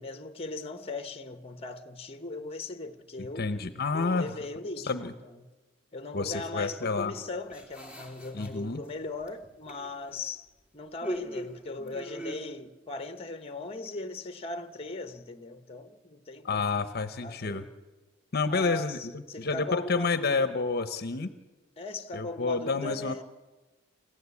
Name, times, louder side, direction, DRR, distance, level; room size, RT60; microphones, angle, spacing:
voice 1, 0.0-3.5 3.9-5.4 5.9-10.5 10.7-16.6 17.2-17.7 18.5-20.6 21.8-23.2, left 2 dB, 30° left, 1.1 m, -39 dB
voice 2, 3.2-4.3 4.9-5.1 6.1-7.1 8.3-8.8 16.4-17.7 18.3-19.1 19.4-21.3 22.1-23.2, left 4 dB, 55° left, 0.9 m, -29 dB
sound 1, 7.1-8.9 9.2-10.3 11.0-12.4, equal, 5° right, 2.7 m, -40 dB
28.5 x 15.0 x 8.4 m
head